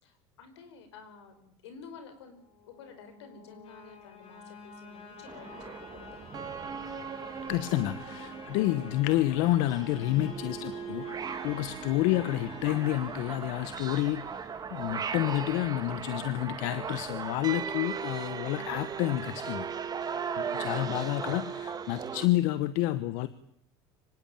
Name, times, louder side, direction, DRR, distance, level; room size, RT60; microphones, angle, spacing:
voice 1, 0.0-2.4 2.6-6.9 18.5-18.7 20.4-21.1, left 4 dB, 90° left, 9 dB, 5.2 m, -51 dB
sound 1, 2.2-15.2, left 6 dB, 45° left, 5.9 m, -50 dB
sound 2, 5.3-22.3, right 7 dB, 30° right, 2.1 m, -38 dB
voice 2, 7.5-11.1 11.4-14.2 14.7-19.7 20.6-23.3, left 15 dB, 70° left, 14 dB, 1.1 m, -29 dB
25.0 x 18.0 x 9.0 m, 0.73 s
supercardioid pair, 105°, 14 cm